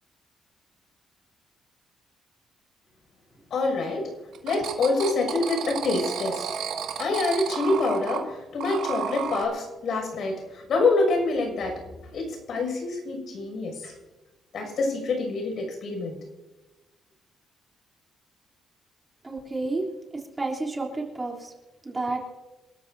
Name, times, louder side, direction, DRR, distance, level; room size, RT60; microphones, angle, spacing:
voice 1, 3.5-4.1 4.4-6.4 7.0-11.8 12.1-14.0 14.5-16.2, left 3 dB, 65° left, 2 dB, 6.6 m, -26 dB
sound 1, 4.3-8.2 8.6-9.4, right 8 dB, 80° right, 2.2 m, -32 dB
voice 2, 19.2-19.9 20.4-21.5 21.8-22.2, right 2 dB, 20° right, -2 dB, 3.4 m, -30 dB
28.0 x 12.5 x 2.8 m, 1.1 s
cardioid pair, 90°, 0 cm